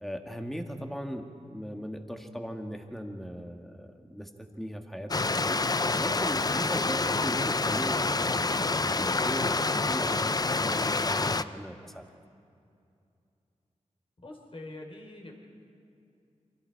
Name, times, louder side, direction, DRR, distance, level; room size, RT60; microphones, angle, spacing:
voice 1, 0.0-12.0, equal, ahead, 3 dB, 1.9 m, -39 dB
Stream, 5.1-11.4, left 3 dB, 30° left, 0.5 m, -27 dB
voice 2, 14.2-15.3, left 2 dB, 50° left, 1 dB, 4.0 m, -44 dB
29.0 x 24.5 x 4.8 m, 2.5 s
wide cardioid pair, 65°, 12 cm